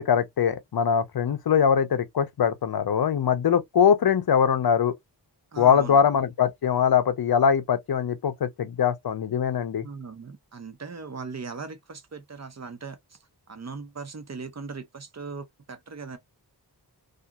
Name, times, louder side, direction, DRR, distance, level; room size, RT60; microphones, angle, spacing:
voice 1, 0.0-4.9 5.6-9.9, left 7 dB, 65° left, 0.6 m, -22 dB
voice 2, 5.5-6.0 9.8-13.2 13.5-16.2, right 4 dB, 40° right, 0.7 m, -39 dB
2.8 x 2.5 x 2.3 m
wide cardioid pair, 105°, 41 cm